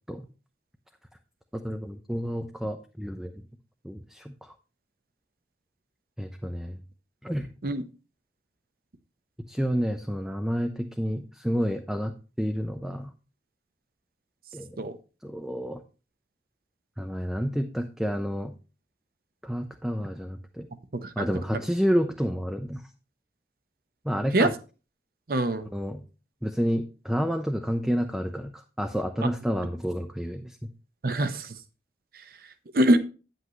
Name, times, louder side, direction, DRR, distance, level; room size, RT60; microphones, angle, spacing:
voice 1, 1.5-3.3 3.8-4.3 6.2-6.8 7.2-7.5 9.5-13.1 14.5-14.9 15.2-15.8 17.0-18.5 19.4-20.7 21.2-22.8 24.1-24.5 25.7-26.0 26.4-30.6, equal, ahead, 0.5 m, -29 dB
voice 2, 20.9-21.3 21.5-21.6 24.3-24.5 25.3-25.7 31.0-31.5 32.7-33.0, right 1 dB, 55° right, 0.7 m, -24 dB
9.3 x 7.9 x 3.1 m
head